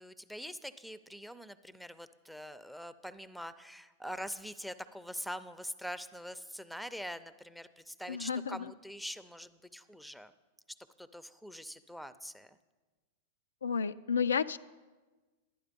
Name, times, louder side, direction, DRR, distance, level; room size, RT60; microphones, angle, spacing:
voice 1, 0.0-10.3 11.0-12.6, equal, ahead, 14 dB, 0.6 m, -44 dB
voice 2, 8.1-8.7 13.6-14.6, left 6 dB, 85° left, 12 dB, 0.3 m, -31 dB
11.5 x 10.0 x 5.2 m, 1.3 s
hypercardioid pair, 105°, 0 cm